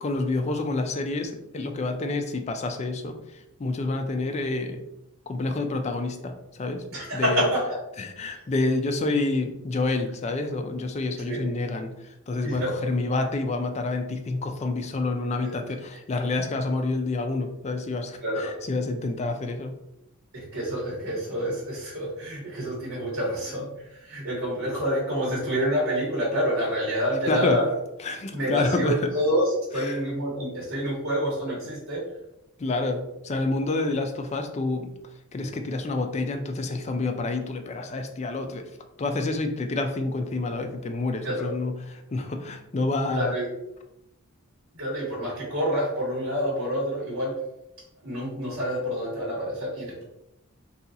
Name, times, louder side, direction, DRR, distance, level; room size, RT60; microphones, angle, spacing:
voice 1, 0.0-4.8 5.3-6.8 7.1-7.5 8.0-19.8 27.3-27.6 28.0-29.1 29.8-30.0 32.6-34.9 35.3-38.7 39.0-43.4, left 2 dB, 30° left, 5 dB, 0.3 m, -28 dB
voice 2, 6.9-7.8 8.3-8.4 11.3-11.4 12.4-12.8 15.4-15.5 18.2-18.5 20.3-27.7 28.3-32.0 35.4-35.5 41.2-41.5 43.1-43.5 44.7-47.4 48.0-50.0, equal, 70° right, -5 dB, 1.1 m, -28 dB
2.7 x 2.3 x 3.9 m, 0.87 s
head